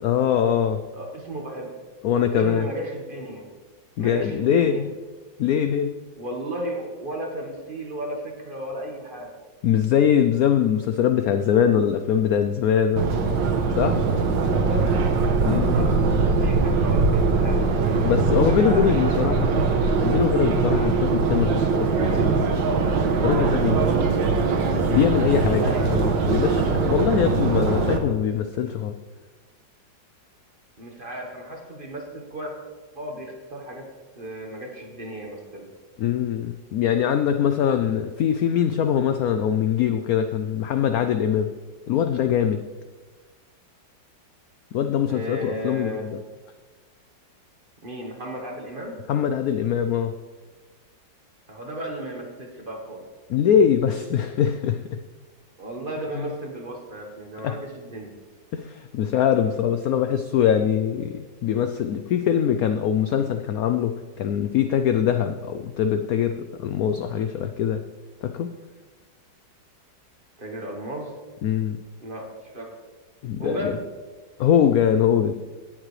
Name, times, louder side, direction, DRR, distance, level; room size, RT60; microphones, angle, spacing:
voice 1, 0.0-0.8 2.0-2.7 4.0-4.9 5.4-5.9 9.6-13.1 13.7-14.0 15.4-15.9 18.0-19.5 20.0-22.6 23.2-24.1 24.9-29.0 36.0-41.5 41.9-42.6 44.7-46.2 49.1-50.1 53.3-55.0 56.2-56.3 57.4-57.6 58.5-67.8 68.2-68.5 71.4-71.8 73.2-73.8 74.4-75.3, left 8 dB, 75° left, 8 dB, 0.8 m, -22 dB
voice 2, 0.9-1.7 2.3-3.5 4.0-4.8 6.2-9.3 14.4-14.9 15.5-17.6 18.5-19.5 20.7-21.0 25.5-26.0 30.8-32.5 32.9-33.9 34.2-35.7 45.1-46.0 47.8-49.0 51.5-53.0 55.6-58.1 70.4-71.1 72.0-72.8 73.4-73.8, right 1 dB, 30° right, 1 dB, 1.4 m, -34 dB
Subway metro underground, 13.0-28.0, right 4 dB, 80° right, 1.7 m, -21 dB
17.0 x 7.5 x 3.2 m, 1.3 s
omnidirectional pair, 2.0 m